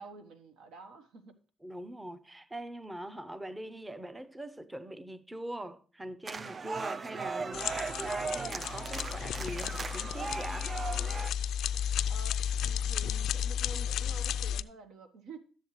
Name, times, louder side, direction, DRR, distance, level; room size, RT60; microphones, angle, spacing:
voice 1, 0.0-1.4 12.1-15.4, right 3 dB, 85° right, 1.1 m, -49 dB
voice 2, 1.6-10.7, right 1 dB, 15° right, 0.7 m, -42 dB
sound 1, 6.0-11.3, right 4 dB, 50° right, 0.7 m, -48 dB
sound 2, 6.3-11.3, right 4 dB, 35° right, 0.3 m, -38 dB
sound 3, 7.5-14.6, left 9 dB, 80° left, 0.3 m, -33 dB
12.0 x 7.2 x 3.1 m
cardioid pair, 90°, 0 cm